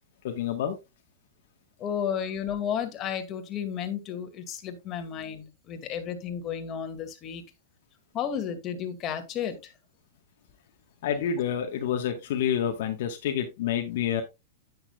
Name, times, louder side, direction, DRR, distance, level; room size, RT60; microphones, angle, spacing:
voice 1, 0.2-0.8 11.0-14.2, left 9 dB, 60° left, 1.4 m, -28 dB
voice 2, 1.8-7.4 8.1-9.7, left 8 dB, 30° left, 2.2 m, -33 dB
10.0 x 8.9 x 2.4 m
hypercardioid pair, 125°, 0 cm